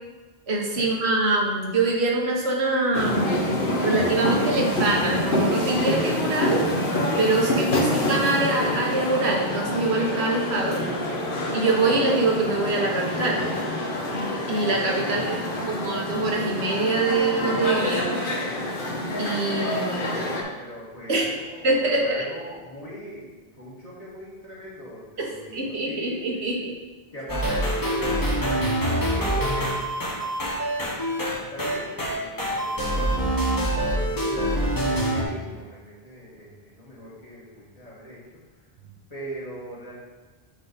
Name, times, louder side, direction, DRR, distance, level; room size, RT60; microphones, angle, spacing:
voice 1, 0.5-6.6 7.2-10.8 11.5-13.4 14.5-15.4 15.7-18.2 19.2-20.3 21.1-21.2 21.6-22.2 25.2-25.3 25.5-26.7, right 2 dB, 85° right, -2 dB, 1.4 m, -24 dB
sound 1, 2.9-20.4, left 1 dB, 60° left, 1.1 m, -26 dB
voice 2, 7.3-8.0 15.1-16.0 20.1-26.4 27.1-28.6 28.9-29.8 31.5-33.3 33.9-38.4 39.1-39.9, equal, 40° left, -7 dB, 2.0 m, -41 dB
sound 2, 27.3-35.2, right 1 dB, 20° left, 1.0 m, -25 dB
7.8 x 3.8 x 4.0 m, 1.3 s
omnidirectional pair, 1.0 m